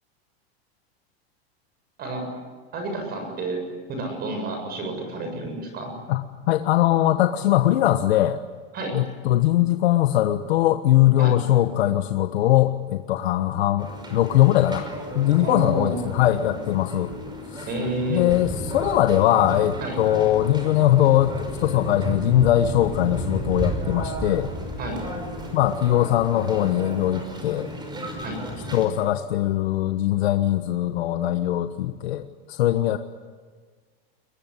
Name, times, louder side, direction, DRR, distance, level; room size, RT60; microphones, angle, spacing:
voice 1, 2.7-3.6 3.9-5.9 8.7-9.0 11.2-11.3 15.4-15.9 17.7-18.2 19.8-20.0 24.8-25.0 28.2-28.4, right 2 dB, 30° right, 4 dB, 7.4 m, -30 dB
voice 2, 6.1-8.4 8.9-17.1 17.5-17.7 18.1-24.5 25.5-27.7 28.7-33.0, left 13 dB, 90° left, 8 dB, 1.3 m, -21 dB
sound 1, 13.8-28.9, equal, 15° right, 5.5 m, -33 dB
22.5 x 22.0 x 9.8 m, 1.5 s
supercardioid pair, 150°, 31 cm